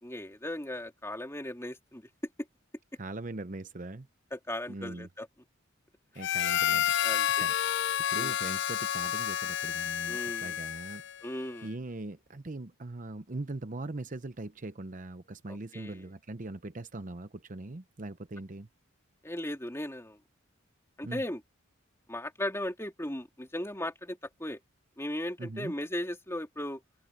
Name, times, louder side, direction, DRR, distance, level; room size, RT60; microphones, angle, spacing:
voice 1, 0.0-2.0 4.3-5.3 7.0-7.5 8.2-8.3 10.1-10.6 11.2-11.7 15.5-16.1 19.2-20.2 21.0-21.4 22.1-24.6 25.0-26.8, left 1 dB, 15° left, 3.3 m, -37 dB
voice 2, 3.0-4.1 4.7-5.1 6.1-6.9 7.3-11.0 11.6-18.7 21.0-21.2 25.4-25.7, right 2 dB, 40° right, 0.8 m, -41 dB
Harmonica, 6.2-11.2, left 10 dB, 60° left, 0.5 m, -30 dB
open air
head